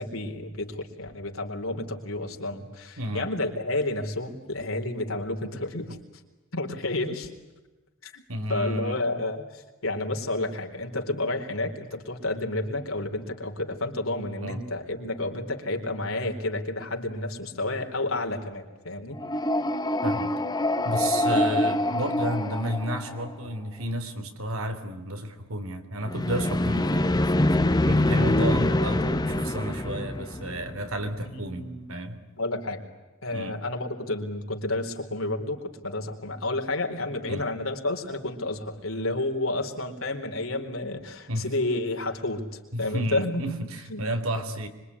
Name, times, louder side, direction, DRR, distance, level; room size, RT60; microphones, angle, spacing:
voice 1, 0.0-6.0 6.5-7.3 8.0-8.2 8.5-19.2 21.3-21.8 31.2-31.9 32.4-32.8 33.2-43.4 43.9-44.0, left 2 dB, 80° left, 2 dB, 4.1 m, -30 dB
voice 2, 3.0-3.3 8.3-9.0 14.4-14.6 20.0-20.4 20.8-27.6 27.8-32.2 33.3-33.6 37.3-37.5 41.3-41.5 42.7-44.7, right 1 dB, 90° right, 7 dB, 3.3 m, -32 dB
sound 1, 19.1-23.5 26.1-31.0, left 1 dB, 20° left, 0.9 m, -25 dB
26.0 x 23.5 x 9.8 m, 1.2 s
head